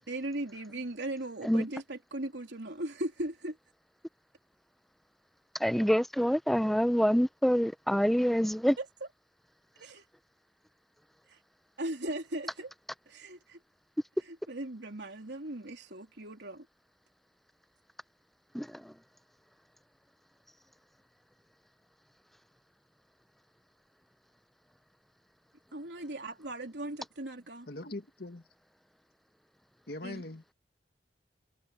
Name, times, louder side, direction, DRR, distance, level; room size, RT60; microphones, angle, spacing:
voice 1, 0.1-3.6 8.8-8.9 9.8-10.0 11.3-11.4 11.8-12.7 13.1-13.6 14.2-16.7 25.7-27.7 30.0-30.2, right 1 dB, 80° right, 3.1 m, -38 dB
voice 2, 5.6-8.8 18.5-18.9, equal, ahead, 0.6 m, -26 dB
voice 3, 27.7-28.4 29.9-30.4, left 2 dB, 60° left, 1.7 m, -41 dB
head